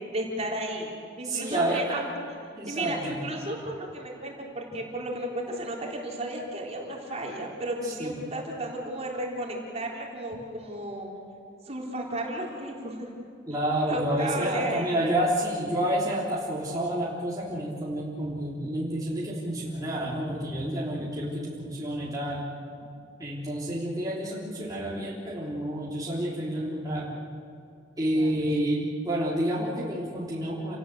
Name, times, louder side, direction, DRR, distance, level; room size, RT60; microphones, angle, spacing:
voice 1, 0.1-0.9 1.2-2.1 2.6-11.1 11.6-13.1 13.9-15.0 28.1-28.3, right 1 dB, 35° right, -2 dB, 4.0 m, -33 dB
voice 2, 1.2-2.1 2.6-3.2 7.8-8.2 13.5-22.4 23.2-27.1 28.0-30.8, right 1 dB, 20° right, -7 dB, 3.5 m, -29 dB
29.5 x 18.5 x 7.8 m, 2.5 s
head